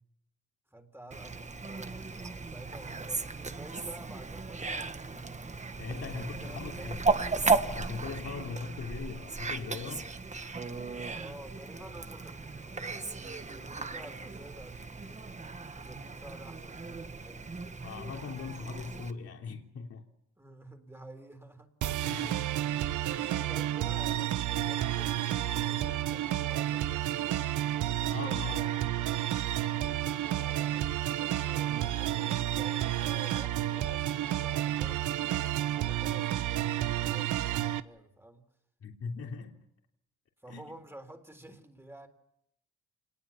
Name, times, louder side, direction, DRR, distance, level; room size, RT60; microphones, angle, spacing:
voice 1, 0.7-5.4 6.1-7.4 11.1-15.3 15.6-17.9 20.4-21.7 23.1-27.5 30.3-38.4 40.4-42.1, right 1 dB, 10° right, 3.7 m, -51 dB
Fowl, 1.1-19.1, right 4 dB, 25° right, 1.5 m, -35 dB
voice 2, 5.8-7.0 7.7-10.1 17.8-20.1 22.0-22.4 23.1-23.5 28.1-29.2 38.8-39.5 40.5-40.6, left 5 dB, 50° left, 3.4 m, -40 dB
sound 1, 21.8-37.8, right 13 dB, 80° right, 1.1 m, -31 dB
27.0 x 20.0 x 7.3 m
cardioid pair, 90°, 30 cm